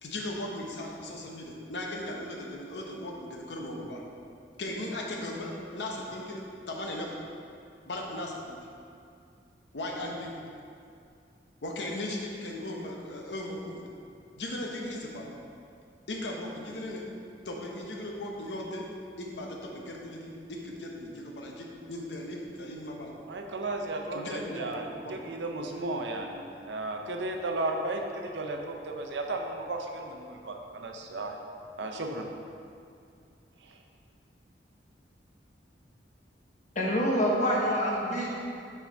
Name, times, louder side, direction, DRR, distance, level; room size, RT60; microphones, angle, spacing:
voice 1, 0.0-4.0 4.6-7.2 7.8-8.6 9.7-10.4 11.6-13.8 14.4-15.3 16.1-17.1 17.4-18.9 19.2-23.1 24.1-25.3, left 1 dB, 75° left, 0 dB, 0.9 m, -37 dB
voice 2, 23.3-31.4 31.8-32.3 33.6-33.8, right 2 dB, 85° right, 3 dB, 0.7 m, -34 dB
voice 3, 36.7-38.3, equal, 45° left, -4 dB, 1.1 m, -26 dB
5.8 x 4.8 x 4.2 m, 2.5 s
head